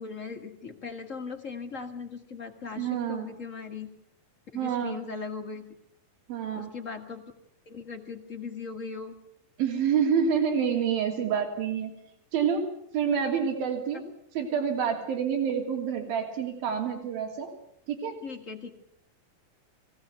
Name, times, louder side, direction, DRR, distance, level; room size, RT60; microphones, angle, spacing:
voice 1, 0.0-3.9 4.5-5.7 6.6-7.3 7.6-9.1 13.9-14.0 18.2-18.7, left 5 dB, 45° left, 4 dB, 1.0 m, -39 dB
voice 2, 2.8-3.3 4.5-5.0 6.3-6.7 9.6-11.9 12.3-12.7 12.9-14.0 14.3-17.5 17.9-18.2, right 7 dB, 80° right, 3 dB, 4.6 m, -27 dB
22.5 x 17.0 x 8.1 m, 0.71 s
omnidirectional pair, 4.2 m